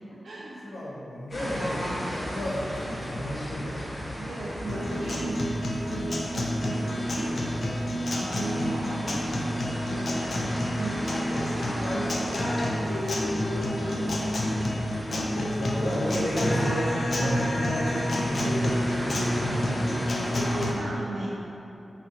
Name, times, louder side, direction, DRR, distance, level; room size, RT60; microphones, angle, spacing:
voice 1, 0.1-0.6 4.2-14.2 20.4-21.3, right 2 dB, 80° right, -5 dB, 0.5 m, -38 dB
voice 2, 0.6-3.8 15.6-19.6, equal, 80° left, -6 dB, 0.8 m, -32 dB
sound 1, 1.3-20.7, equal, 35° left, 0.9 m, -36 dB
sound 2, 1.6-16.7, equal, 5° left, 1.0 m, -47 dB
Guitar, 4.7-20.7, left 1 dB, 60° left, 0.4 m, -29 dB
4.2 x 2.5 x 4.0 m, 2.9 s
wide cardioid pair, 95°, 0 cm